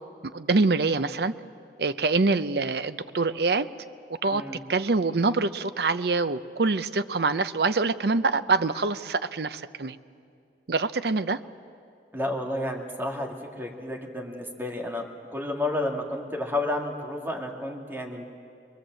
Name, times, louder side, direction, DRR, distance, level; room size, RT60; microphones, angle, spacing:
voice 1, 0.3-1.3 1.8-3.7 4.2-4.4 4.7-10.0 10.7-11.4, right 3 dB, 60° right, 12 dB, 0.7 m, -25 dB
voice 2, 12.1-15.0 15.3-18.3, left 1 dB, 10° right, 0 dB, 2.3 m, -31 dB
23.5 x 22.0 x 7.6 m, 2.4 s
head